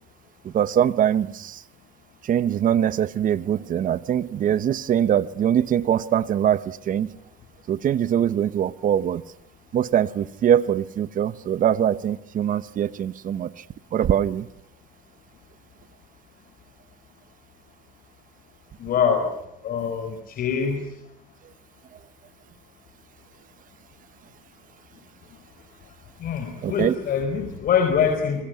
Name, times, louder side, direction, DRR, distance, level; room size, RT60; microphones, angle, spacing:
voice 1, 0.4-1.6 2.3-7.1 7.7-9.2 9.7-13.5 13.9-14.5 26.6-26.9, right 10 dB, 55° right, 1.1 m, -22 dB
voice 2, 18.8-19.3 19.6-20.8 26.2-28.4, left 7 dB, 60° left, 4.5 m, -24 dB
27.0 x 21.0 x 9.4 m
cardioid pair, 110°, 17 cm